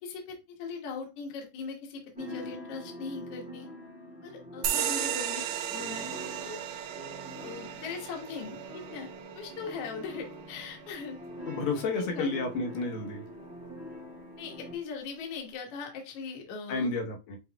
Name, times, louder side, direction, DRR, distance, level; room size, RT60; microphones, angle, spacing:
voice 1, 0.0-3.7 4.2-6.1 6.4-6.6 7.4-9.1 9.3-11.2 11.7-11.8 12.1-12.3 14.4-16.9, left 5 dB, 60° left, 1.7 m, -40 dB
sound 1, 2.1-14.7, equal, 5° right, 0.6 m, -44 dB
sound 2, 4.6-11.7, right 10 dB, 85° right, 1.5 m, -36 dB
voice 2, 11.5-13.2 16.7-17.4, left 3 dB, 85° left, 2.7 m, -31 dB
7.9 x 2.9 x 2.2 m
omnidirectional pair, 3.9 m